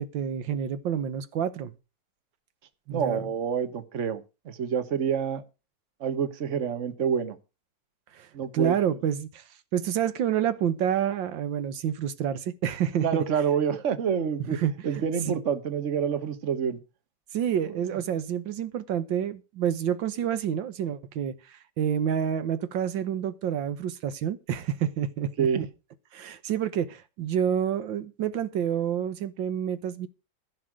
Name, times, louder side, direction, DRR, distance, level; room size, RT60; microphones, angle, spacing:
voice 1, 0.0-1.7 2.9-3.3 8.1-8.3 8.5-9.4 9.7-13.2 14.5-15.4 17.3-25.5 26.1-30.1, right 9 dB, 90° right, 1.8 m, -28 dB
voice 2, 2.9-5.4 6.0-7.4 8.3-8.7 13.0-14.6 14.8-16.8 17.6-17.7 25.4-25.7, right 7 dB, 45° right, 1.5 m, -27 dB
15.5 x 5.7 x 6.3 m
omnidirectional pair, 2.0 m